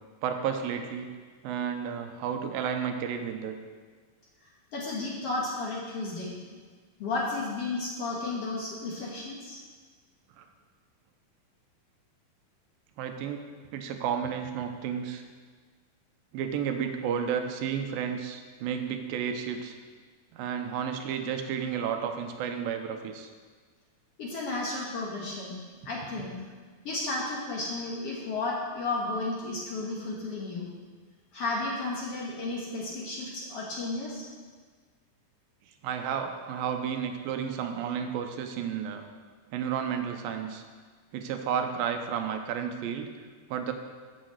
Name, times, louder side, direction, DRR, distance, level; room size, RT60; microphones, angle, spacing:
voice 1, 0.2-1.1 1.4-3.5 10.4-10.5 13.0-13.4 13.7-15.2 16.3-19.8 20.3-23.3 35.8-39.0 39.5-40.6 41.1-43.1 43.5-43.7, right 7 dB, 90° right, 5 dB, 2.5 m, -32 dB
voice 2, 4.4-6.3 7.0-9.6 24.2-25.6 25.9-26.4 26.8-30.7 31.3-34.3, left 2 dB, 55° left, -4 dB, 1.9 m, -33 dB
8.3 x 6.4 x 7.6 m, 1.5 s
omnidirectional pair, 4.1 m